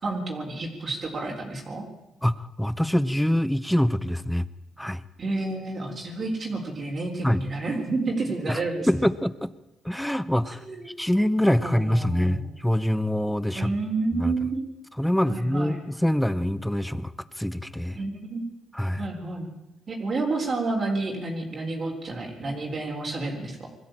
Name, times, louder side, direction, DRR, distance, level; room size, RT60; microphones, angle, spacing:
voice 1, 0.0-1.9 5.2-8.9 10.6-10.9 11.6-12.5 13.5-14.7 15.3-15.8 17.9-18.6 19.0-19.5 19.9-23.7, right 3 dB, 40° right, 0 dB, 4.0 m, -30 dB
voice 2, 2.2-4.4 4.8-5.0 7.2-7.4 8.5-8.6 8.9-9.5 9.8-13.8 14.1-14.3 15.0-17.1 17.4-18.0 18.7-19.0, equal, 5° left, 16 dB, 1.0 m, -25 dB
21.5 x 14.0 x 9.0 m, 0.94 s
cardioid pair, 90°, 0 cm